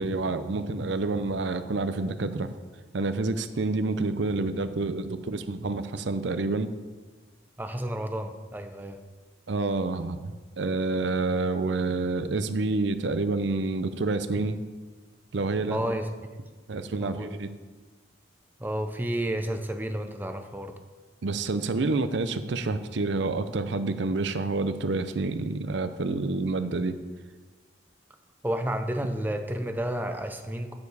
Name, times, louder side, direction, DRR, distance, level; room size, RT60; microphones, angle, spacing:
voice 1, 0.0-2.5 2.9-6.7 9.5-14.6 15.3-15.8 16.7-17.5 21.2-27.0, right 3 dB, 65° right, 11 dB, 0.6 m, -28 dB
voice 2, 7.6-9.0 15.7-16.3 17.0-17.3 18.6-20.8 28.4-30.7, right 1 dB, 10° right, 6 dB, 0.6 m, -31 dB
9.4 x 6.8 x 4.8 m, 1.4 s
head